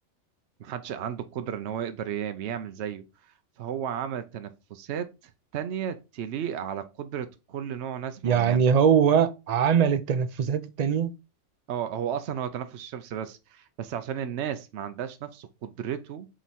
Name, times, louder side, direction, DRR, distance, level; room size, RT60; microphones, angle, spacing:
voice 1, 0.6-3.0 3.6-8.6 11.7-16.3, right 9 dB, 70° right, 0.9 m, -34 dB
voice 2, 8.2-11.1, right 7 dB, 45° right, 0.6 m, -22 dB
7.6 x 3.1 x 4.1 m
omnidirectional pair, 1.3 m